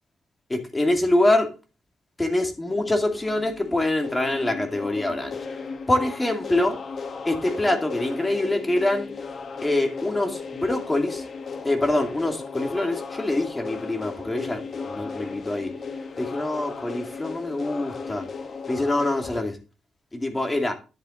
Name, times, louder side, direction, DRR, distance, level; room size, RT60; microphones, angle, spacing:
voice 1, 0.5-1.5 2.2-5.4 5.9-6.7 7.2-9.1 9.6-11.2 11.6-15.7 16.2-18.2 18.7-19.6 20.1-20.7, left 1 dB, 15° left, 5 dB, 2.3 m, -25 dB
sound 1, 2.7-19.4, left 5 dB, 50° left, 1.3 m, -36 dB
10.5 x 7.5 x 3.9 m, 0.32 s
cardioid pair, 90°, 0 cm